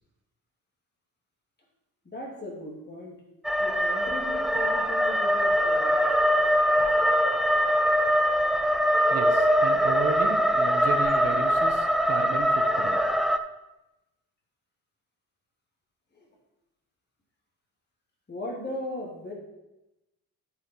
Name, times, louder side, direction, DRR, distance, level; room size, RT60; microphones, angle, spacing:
voice 1, 2.0-3.1 3.6-6.0 18.3-19.3, left 1 dB, 30° left, -2 dB, 2.8 m, -37 dB
sound 1, 3.4-13.4, equal, ahead, 0.4 m, -23 dB
voice 2, 9.1-13.0, right 6 dB, 45° right, 5 dB, 1.0 m, -34 dB
9.3 x 5.7 x 4.6 m, 0.96 s
cardioid pair, 95°, 35 cm